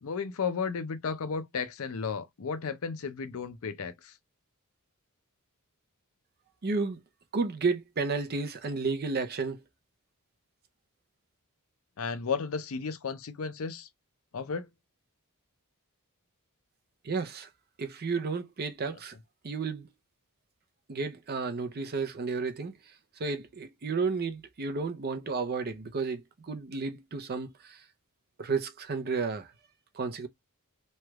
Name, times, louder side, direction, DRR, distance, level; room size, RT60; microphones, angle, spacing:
voice 1, 0.0-4.1 12.0-13.9 14.3-14.7, left 5 dB, 65° left, 0.5 m, -34 dB
voice 2, 6.6-7.0 7.3-9.6 17.0-17.5 17.8-19.1 19.4-19.9 20.9-22.9 23.2-27.8 28.4-29.5 29.9-30.3, right 4 dB, 45° right, 0.5 m, -32 dB
3.2 x 2.3 x 2.9 m
head